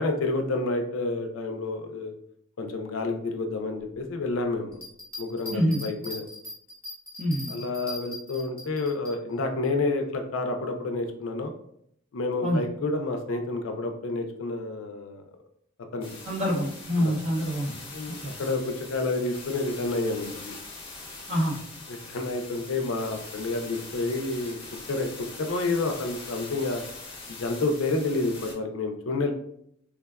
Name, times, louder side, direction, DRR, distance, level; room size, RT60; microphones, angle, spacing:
voice 1, 0.0-2.1 2.6-4.8 5.2-6.2 7.5-11.5 12.1-15.2 15.9-16.1 17.0-17.1 17.9-20.5 21.9-24.6 24.9-25.1 25.4-26.8 27.3-29.3, left 2 dB, 70° left, 5 dB, 0.4 m, -29 dB
Bell, 4.7-9.1 9.6-9.7, left 1 dB, 10° left, 0.9 m, -40 dB
voice 2, 5.5-5.8 7.2-7.5 12.4-12.6 16.2-17.8 18.2-18.4 21.3-21.6, equal, 35° right, -2 dB, 0.6 m, -26 dB
sound 1, 16.0-28.5, left 3 dB, 25° left, 0.6 m, -42 dB
3.3 x 2.2 x 2.2 m, 0.70 s
head